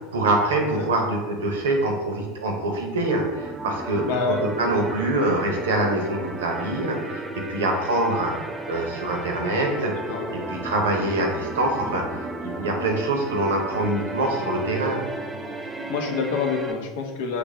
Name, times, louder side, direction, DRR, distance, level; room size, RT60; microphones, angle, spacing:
voice 1, 0.1-4.1 4.6-7.2 7.5-8.4 8.7-9.9 10.5-12.0 12.4-15.0, right 2 dB, 90° right, 2 dB, 0.7 m, -24 dB
sound 1, 3.0-16.7, right 2 dB, 20° right, 0.4 m, -34 dB
voice 2, 4.1-4.4 9.9-10.5 13.7-13.9 15.9-17.4, left 5 dB, 75° left, 3 dB, 0.6 m, -27 dB
3.3 x 2.5 x 3.3 m, 1.3 s
hypercardioid pair, 95°, 0 cm